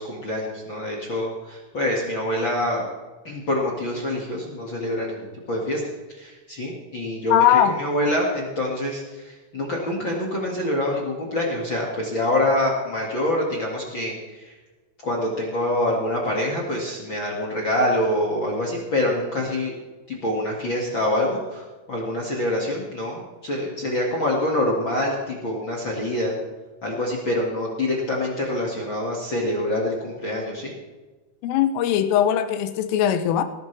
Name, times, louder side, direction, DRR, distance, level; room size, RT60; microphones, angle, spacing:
voice 1, 0.0-2.8 3.2-5.8 6.1-14.5 15.0-19.7 20.1-26.3 26.8-30.7, left 1 dB, 45° left, -2 dB, 1.5 m, -26 dB
voice 2, 7.3-7.8 31.4-33.4, left 10 dB, 85° left, 10 dB, 3.6 m, -20 dB
19.0 x 13.5 x 3.4 m, 1.3 s
omnidirectional pair, 5.7 m